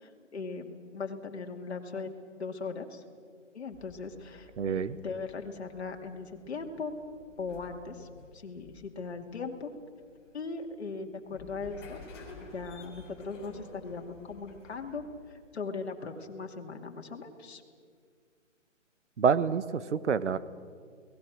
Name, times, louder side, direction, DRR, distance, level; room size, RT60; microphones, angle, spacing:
voice 1, 0.0-2.1 2.4-3.0 3.5-6.9 7.4-8.1 8.3-9.7 10.3-12.0 12.4-15.0 15.3-17.6, left 4 dB, 55° left, 3 dB, 2.6 m, -39 dB
sound 1, 3.7-15.4, left 3 dB, 20° left, 3.8 m, -52 dB
voice 2, 4.6-5.0 19.2-20.4, right 6 dB, 60° right, 15 dB, 1.1 m, -27 dB
29.0 x 19.0 x 6.3 m, 2.1 s
hypercardioid pair, 175°, 38 cm